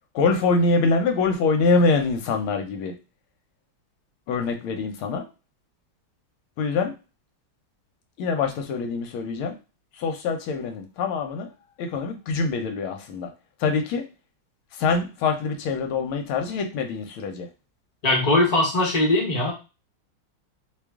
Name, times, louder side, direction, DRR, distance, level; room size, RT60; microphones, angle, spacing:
voice 1, 0.1-2.9 4.3-5.3 6.6-6.9 8.2-9.6 9.9-11.5 11.8-13.3 13.6-14.0 14.7-17.5, left 4 dB, 80° left, 5 dB, 1.5 m, -24 dB
voice 2, 18.0-19.5, left 2 dB, 30° left, -1 dB, 0.7 m, -20 dB
3.3 x 2.3 x 3.4 m, 0.29 s
omnidirectional pair, 2.3 m